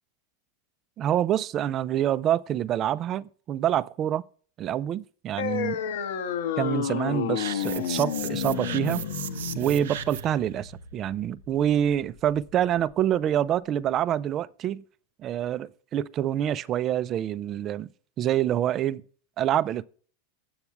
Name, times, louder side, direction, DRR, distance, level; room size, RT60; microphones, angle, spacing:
voice 1, 1.0-4.2 4.6-5.8 6.6-9.0 9.6-14.8 15.2-17.9 18.2-19.0 19.4-19.9, right 11 dB, 30° right, 0.4 m, -26 dB
sound 1, 5.4-12.4, left 9 dB, 80° left, 1.1 m, -31 dB
sound 2, 7.3-10.4, right 10 dB, 90° right, 0.6 m, -37 dB
8.0 x 7.1 x 4.7 m
supercardioid pair, 145°, 0 cm